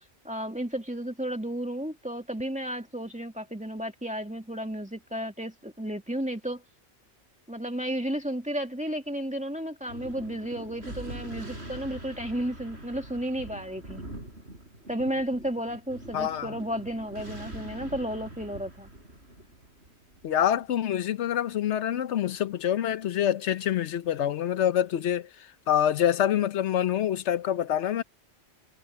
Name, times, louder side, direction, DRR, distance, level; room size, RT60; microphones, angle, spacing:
voice 1, 0.2-6.6 7.5-14.0 14.9-18.9, equal, 5° right, 2.3 m, -33 dB
Thunder, 9.9-20.7, right 1 dB, 70° right, 7.7 m, -43 dB
voice 2, 16.1-16.5 20.2-25.3 25.7-28.0, left 10 dB, 85° left, 1.1 m, -26 dB
omnidirectional pair, 1.1 m